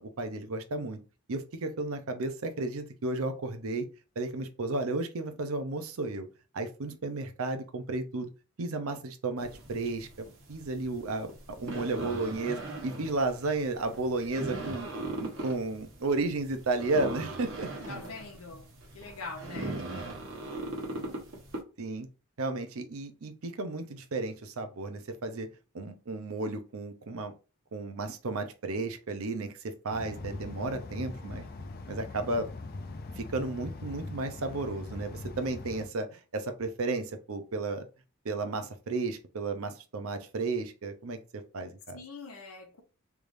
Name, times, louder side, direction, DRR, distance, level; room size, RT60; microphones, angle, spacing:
voice 1, 0.0-1.0 1.3-3.9 4.2-6.3 6.5-8.3 8.6-11.3 11.6-14.9 15.2-17.7 21.8-22.1 22.4-25.5 25.7-27.3 27.7-31.4 31.9-32.5 33.2-37.8 38.2-41.2 41.5-42.0, right 3 dB, 75° right, 0.6 m, -33 dB
sound 1, 9.4-21.6, right 2 dB, 60° right, 1.2 m, -40 dB
voice 2, 17.9-18.7 18.9-19.8 41.9-42.8, left 3 dB, 80° left, 0.9 m, -43 dB
sound 2, 29.9-35.9, left 2 dB, 45° left, 0.4 m, -41 dB
3.5 x 3.2 x 2.6 m
head